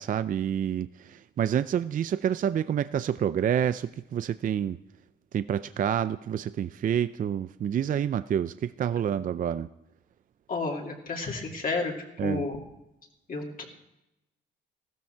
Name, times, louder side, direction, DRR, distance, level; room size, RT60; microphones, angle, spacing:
voice 1, 0.0-4.8 5.3-9.7 12.2-12.5, right 9 dB, 45° right, 14 dB, 0.4 m, -28 dB
voice 2, 10.5-11.9 12.2-12.6 13.3-13.6, left 3 dB, 45° left, 0 dB, 2.5 m, -31 dB
14.5 x 13.0 x 4.5 m, 0.91 s
cardioid pair, 90°, 20 cm